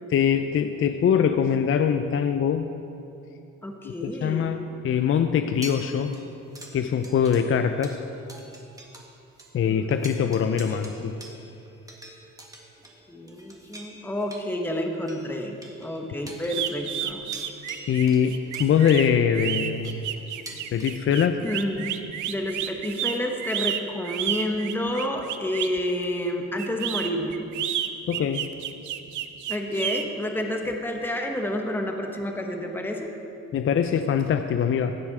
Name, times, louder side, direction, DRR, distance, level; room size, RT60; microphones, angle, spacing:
voice 1, 0.1-2.7 3.8-4.6 4.8-6.2 6.7-8.0 9.5-11.2 17.9-20.0 20.7-21.4 28.1-28.5 33.5-35.0, left 8 dB, 45° left, 8 dB, 0.5 m, -23 dB
voice 2, 3.6-4.8 9.7-10.0 10.3-11.1 13.1-17.3 21.4-21.9 22.3-27.4 29.5-33.1, left 1 dB, 5° left, 2 dB, 1.2 m, -30 dB
sound 1, 5.6-9.1 9.4-9.5 9.9-20.9, right 1 dB, 10° right, 1.6 m, -46 dB
sound 2, 16.5-25.8 26.6-30.0, right 11 dB, 80° right, 0.7 m, -31 dB
16.5 x 7.1 x 4.9 m, 2.7 s
cardioid pair, 90°, 30 cm